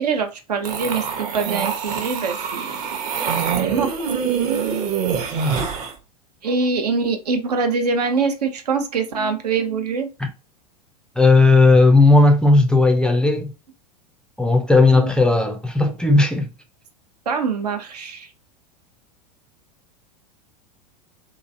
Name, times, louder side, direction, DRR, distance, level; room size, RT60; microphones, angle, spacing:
voice 1, 0.0-4.2 6.4-10.1 15.0-15.1 17.3-18.3, right 4 dB, 75° right, 0.6 m, -24 dB
sound 1, 0.6-5.9, right 7 dB, 40° right, 0.8 m, -25 dB
voice 2, 5.4-5.8 11.2-13.5 14.4-16.5, left 3 dB, 5° left, 0.4 m, -15 dB
2.9 x 2.5 x 2.5 m
figure-of-eight pair, 90°, 20 cm